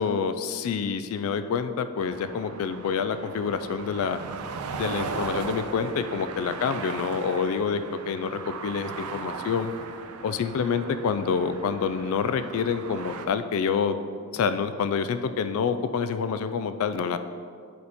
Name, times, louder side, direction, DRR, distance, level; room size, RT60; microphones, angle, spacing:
voice 1, 0.0-4.2 4.7-9.7 10.2-14.0 14.3-17.2, left 6 dB, 65° left, 10 dB, 0.3 m, -27 dB
sound 1, 2.0-13.3, right 4 dB, 75° right, 0.5 m, -37 dB
10.5 x 3.6 x 4.1 m, 2.2 s
head